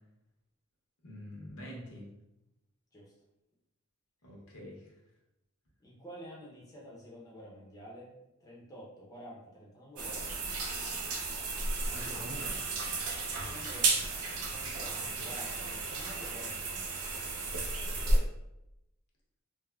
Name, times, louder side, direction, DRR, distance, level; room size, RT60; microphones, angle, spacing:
voice 1, 1.0-2.1 4.2-4.9 11.9-12.6 14.9-15.3, equal, 80° left, -3 dB, 0.8 m, -46 dB
voice 2, 5.8-8.1 8.4-10.6 13.3-16.9, equal, 15° left, -5 dB, 0.5 m, -49 dB
sound 1, 10.0-18.2, right 3 dB, 90° right, 0.5 m, -33 dB
3.4 x 2.0 x 2.2 m, 0.90 s
head